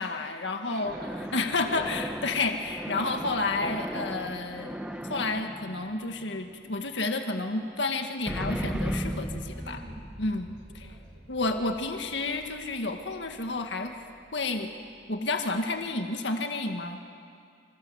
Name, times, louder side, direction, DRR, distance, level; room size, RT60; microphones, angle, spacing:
voice 1, 0.0-0.9 1.3-4.8 5.1-9.8 10.2-10.9 11.3-14.0 14.3-14.7 15.1-17.0, left 3 dB, 70° left, 5 dB, 1.9 m, -30 dB
voice 2, 0.6-2.1 9.5-10.0 10.8-11.4, right 1 dB, 60° right, 3 dB, 5.0 m, -48 dB
sound 1, 0.8-6.8 8.3-13.6, equal, 5° right, 0.9 m, -37 dB
27.0 x 26.5 x 8.1 m, 2.3 s
head